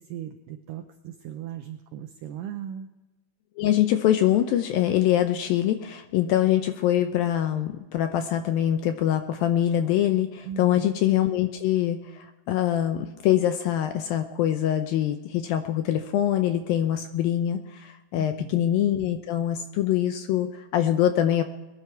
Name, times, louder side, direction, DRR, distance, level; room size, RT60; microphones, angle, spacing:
voice 1, 0.0-2.9 10.4-10.8 18.1-18.6, right 9 dB, 85° right, 6 dB, 1.9 m, -38 dB
voice 2, 3.6-21.4, left 11 dB, 80° left, 8 dB, 2.1 m, -24 dB
22.0 x 10.5 x 4.6 m, 1.1 s
omnidirectional pair, 4.8 m